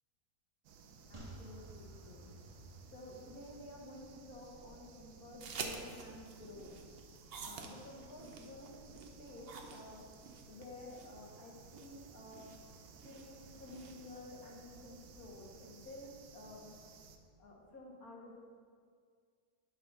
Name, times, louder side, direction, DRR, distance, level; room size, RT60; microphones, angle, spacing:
sound 1, 0.6-17.2, right 5 dB, 90° right, 1.2 m, -58 dB
voice 1, 1.1-2.6 2.9-6.7 7.4-10.1 10.5-12.5 13.0-16.7 17.4-18.4, left 2 dB, 75° left, -1 dB, 1.7 m, -52 dB
sound 2, 1.1-4.6 4.9-5.0, right 1 dB, 25° right, 0.9 m, -54 dB
sound 3, 5.4-14.2, right 4 dB, 55° right, 0.8 m, -49 dB
9.6 x 4.0 x 5.5 m, 2.1 s
omnidirectional pair, 1.6 m